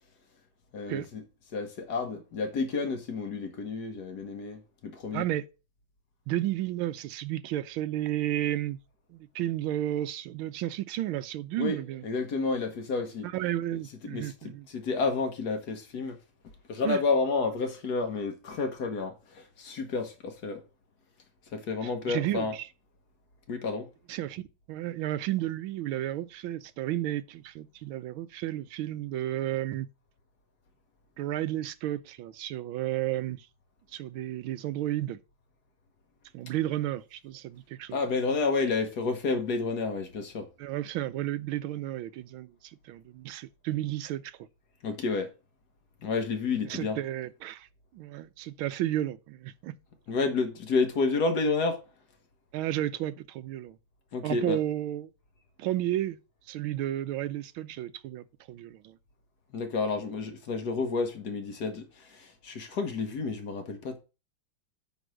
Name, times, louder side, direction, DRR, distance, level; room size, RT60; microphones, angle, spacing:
voice 1, 0.7-1.2 1.5-5.3 11.6-11.8 12.0-13.3 14.0-16.2 16.7-20.6 21.5-22.5 23.5-23.9 37.9-40.5 44.8-45.3 46.0-47.0 50.1-51.8 54.1-54.6 59.5-64.0, left 4 dB, 55° left, 1.6 m, -30 dB
voice 2, 5.1-5.4 6.3-8.8 9.1-12.0 13.2-14.7 16.8-17.0 21.8-22.7 24.1-24.4 24.7-29.9 31.2-33.5 33.9-35.2 36.3-38.0 40.6-44.5 46.6-47.7 47.9-49.7 52.5-53.8 54.2-55.1 55.6-56.2 56.5-59.0, right 13 dB, 85° right, 1.4 m, -32 dB
9.1 x 3.4 x 6.2 m
omnidirectional pair, 2.2 m